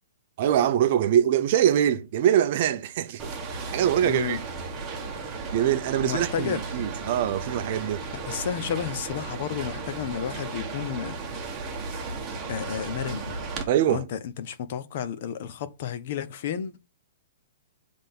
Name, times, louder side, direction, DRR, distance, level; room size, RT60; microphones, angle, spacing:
voice 1, 0.4-3.3 3.7-4.4 5.5-8.1 13.7-14.0, right 10 dB, 35° right, 0.6 m, -23 dB
sound 1, 3.2-13.6, right 4 dB, 10° right, 1.2 m, -35 dB
voice 2, 4.0-4.4 6.0-6.6 8.2-11.4 12.5-16.8, left 8 dB, 40° left, 0.8 m, -32 dB
7.4 x 3.5 x 5.8 m
hypercardioid pair, 175°, 0 cm